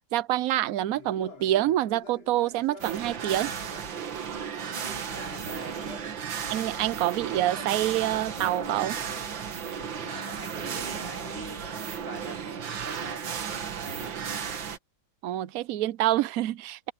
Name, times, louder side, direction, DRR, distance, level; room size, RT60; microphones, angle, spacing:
voice 1, 0.1-3.5 6.5-9.0 15.2-16.9, right 13 dB, 90° right, 0.7 m, -27 dB
Conversation, 0.9-6.7 7.1-12.0, left 4 dB, 70° left, 4.1 m, -48 dB
sound 1, 2.8-14.8, right 7 dB, 65° right, 2.2 m, -34 dB
voice 2, 4.6-6.0 10.3-14.2, right 1 dB, 25° right, 4.5 m, -45 dB
omnidirectional pair, 2.3 m